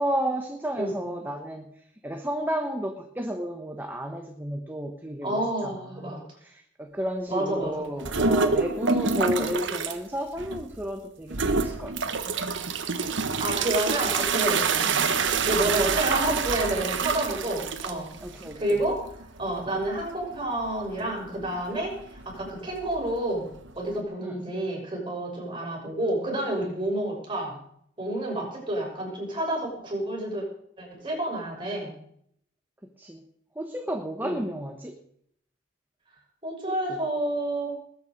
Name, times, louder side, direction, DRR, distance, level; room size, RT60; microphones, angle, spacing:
voice 1, 0.0-1.7 2.0-11.9 14.8-15.0 18.2-18.6 24.2-24.4 33.0-33.2 33.5-35.0 36.6-37.0, equal, 10° right, 3 dB, 1.2 m, -32 dB
voice 2, 5.2-6.2 7.3-7.9 13.4-18.1 18.5-19.0 19.4-23.4 23.7-27.6 28.0-30.4 30.8-31.9 34.2-34.4 36.4-37.7, right 1 dB, 25° right, -3 dB, 6.4 m, -29 dB
sound 1, 8.0-10.0 10.4-10.9 11.3-23.9, right 4 dB, 65° right, 1.2 m, -28 dB
20.5 x 8.6 x 5.3 m, 0.68 s
head